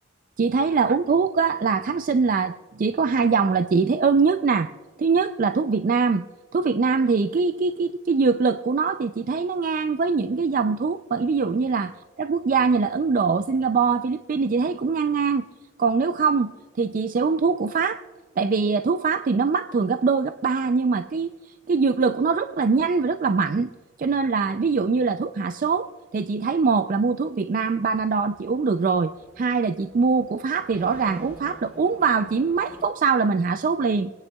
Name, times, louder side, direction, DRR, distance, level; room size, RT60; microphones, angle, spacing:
voice 1, 0.4-4.7 5.0-6.3 6.5-11.9 12.2-15.4 15.8-18.0 18.4-21.3 21.7-23.7 24.0-34.1, right 4 dB, 40° right, 9 dB, 0.3 m, -23 dB
sound 1, 27.8-32.8, right 1 dB, 10° right, 1.8 m, -47 dB
27.5 x 9.9 x 2.3 m, 1.4 s
head